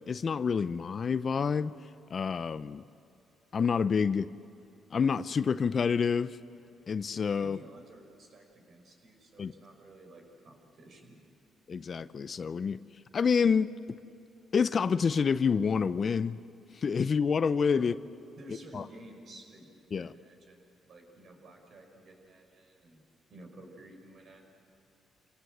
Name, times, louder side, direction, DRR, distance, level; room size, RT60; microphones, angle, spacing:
voice 1, 0.1-1.7 2.1-2.8 3.5-4.3 4.9-6.4 6.9-7.6 9.4-9.5 11.7-12.8 13.1-13.7 14.5-16.4 16.8-17.9 18.7-18.8 19.9-20.1, left 6 dB, 45° left, 14 dB, 0.6 m, -28 dB
voice 2, 7.4-11.2 17.7-17.9 18.4-23.0 23.3-24.4, right 1 dB, 55° right, 2 dB, 5.5 m, -52 dB
28.0 x 18.0 x 8.0 m, 2.8 s
cardioid pair, 90°, 0 cm